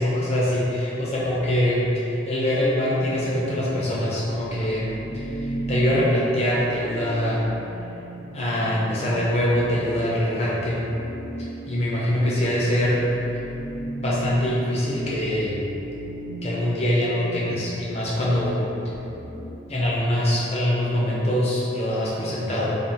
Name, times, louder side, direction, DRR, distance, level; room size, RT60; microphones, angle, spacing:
voice 1, 0.0-7.5 8.3-10.9 11.4-13.0 14.0-15.6 16.4-18.6 19.7-22.8, equal, 35° left, -6 dB, 0.5 m, -24 dB
sound 1, 1.9-19.5, right 1 dB, 85° left, 1.4 m, -37 dB
3.4 x 2.3 x 2.7 m, 3.0 s
head